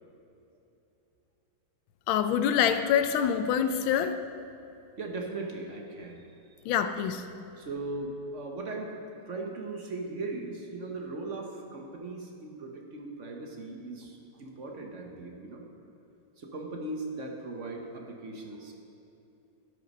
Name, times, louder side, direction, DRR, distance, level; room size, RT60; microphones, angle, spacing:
voice 1, 2.1-4.2 6.6-7.2, left 8 dB, 85° left, 9 dB, 1.4 m, -25 dB
voice 2, 5.0-6.2 7.6-8.9 9.2-15.6 16.4-18.7, right 2 dB, 45° right, 1 dB, 1.1 m, -38 dB
12.5 x 6.4 x 5.4 m, 2.8 s
omnidirectional pair, 2.2 m